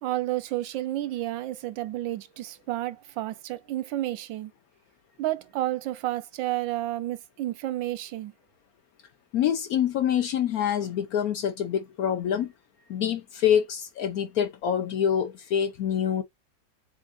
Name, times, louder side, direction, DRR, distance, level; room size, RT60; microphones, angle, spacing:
voice 1, 0.0-4.5 5.2-8.3, right 15 dB, 85° right, 1.3 m, -31 dB
voice 2, 9.3-12.5 12.9-16.2, left 9 dB, 65° left, 1.0 m, -26 dB
7.1 x 2.4 x 2.5 m
omnidirectional pair, 2.0 m